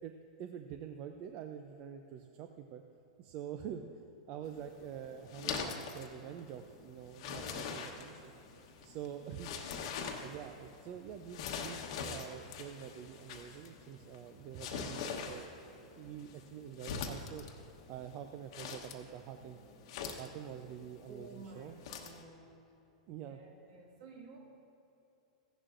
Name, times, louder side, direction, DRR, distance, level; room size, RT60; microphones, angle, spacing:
voice 1, 0.0-2.8 3.2-3.9 4.3-8.3 8.8-9.5 10.1-15.5 16.0-17.4 17.9-19.6 20.2-21.7 23.1-23.4, right 9 dB, 45° right, 6 dB, 0.5 m, -46 dB
sound 1, 4.4-22.2, left 6 dB, 60° left, 1.1 m, -44 dB
voice 2, 21.1-22.7 23.1-24.4, right 3 dB, 65° right, 0 dB, 2.1 m, -53 dB
15.5 x 11.0 x 2.6 m, 3.0 s
hypercardioid pair, 115°, 3 cm